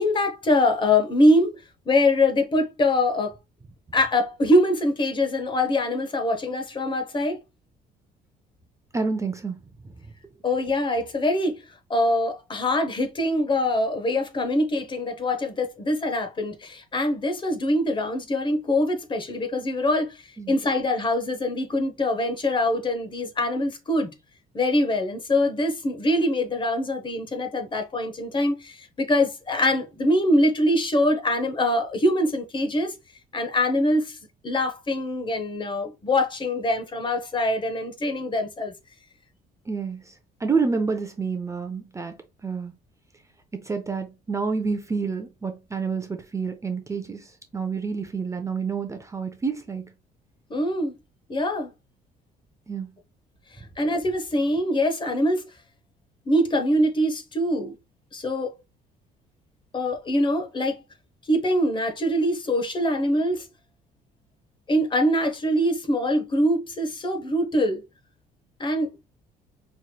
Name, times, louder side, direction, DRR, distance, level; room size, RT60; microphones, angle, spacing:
voice 1, 0.0-1.5 1.9-3.4 3.9-7.4 10.4-11.6 11.9-24.1 24.5-32.9 33.3-34.2 34.4-38.7 50.5-51.0 51.3-51.7 53.8-55.5 56.3-57.7 58.1-58.5 59.7-60.8 61.2-63.5 64.7-67.8 68.6-68.9, left 1 dB, 30° left, 0.9 m, -23 dB
voice 2, 8.9-9.9 20.4-20.5 39.7-42.2 42.4-42.7 43.5-49.9 52.7-52.9, right 5 dB, 15° right, 0.5 m, -29 dB
4.4 x 3.1 x 2.2 m
cardioid pair, 110°, 17 cm